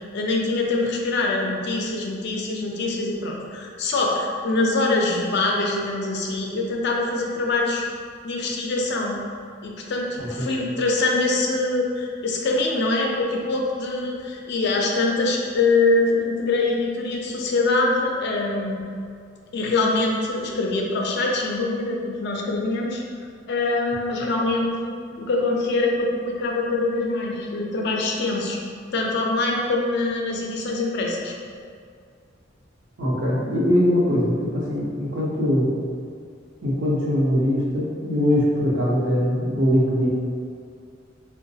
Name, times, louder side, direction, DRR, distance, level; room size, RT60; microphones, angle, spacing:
voice 1, 0.1-7.8 8.2-9.2 9.6-18.8 19.5-23.0 23.5-24.9 25.2-28.6 28.9-31.3, left 2 dB, 60° left, -1 dB, 0.5 m, -24 dB
voice 2, 10.2-10.5 33.0-35.7 36.6-40.1, equal, 70° right, -6 dB, 0.8 m, -22 dB
3.8 x 2.2 x 2.7 m, 2.2 s
head